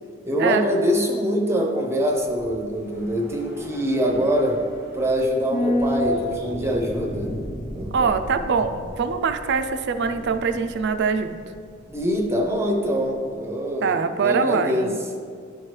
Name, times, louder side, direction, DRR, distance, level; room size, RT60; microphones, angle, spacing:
voice 1, 0.2-4.6 4.9-7.3 7.7-8.1 11.9-14.9, equal, 15° right, 2 dB, 0.6 m, -24 dB
sound 1, 2.1-12.6 12.8-12.9, left 1 dB, 50° left, 1.0 m, -32 dB
voice 2, 7.9-11.4 13.8-15.0, right 5 dB, 55° right, 8 dB, 0.4 m, -23 dB
12.0 x 4.4 x 3.2 m, 2.2 s
head